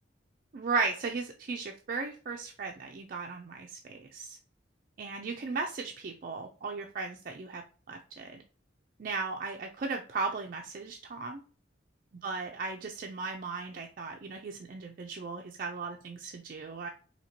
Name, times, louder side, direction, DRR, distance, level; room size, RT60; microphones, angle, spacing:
voice 1, 0.5-4.4 5.0-7.6 7.9-8.4 9.0-11.4 12.2-16.9, right 4 dB, 50° right, 3 dB, 0.4 m, -36 dB
4.3 x 2.8 x 2.8 m, 0.38 s
head